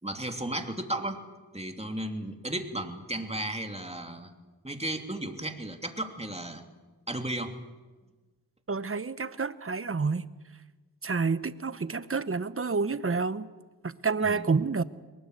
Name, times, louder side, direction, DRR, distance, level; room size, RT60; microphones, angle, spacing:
voice 1, 0.0-1.2 1.5-4.3 4.6-6.6 7.1-7.6 14.2-14.5, right 1 dB, 15° right, 2.9 m, -34 dB
voice 2, 8.7-10.2 11.0-13.5 13.8-14.8, right 4 dB, 35° right, 1.0 m, -29 dB
22.5 x 19.5 x 8.1 m
cardioid pair, 50°, 40 cm